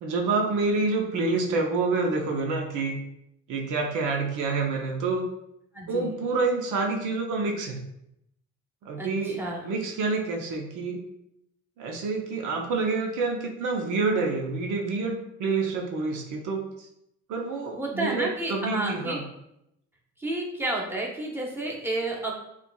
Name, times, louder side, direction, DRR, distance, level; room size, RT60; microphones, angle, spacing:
voice 1, 0.0-3.0 3.5-5.3 5.9-7.8 8.8-9.4 9.6-11.0 11.8-16.9 17.3-19.2, right 3 dB, 90° right, 1 dB, 0.8 m, -27 dB
voice 2, 5.7-6.1 9.0-9.7 17.7-19.2 20.2-22.3, right 2 dB, 5° right, -3 dB, 1.1 m, -31 dB
6.8 x 2.5 x 2.3 m, 0.80 s
cardioid pair, 90°, 30 cm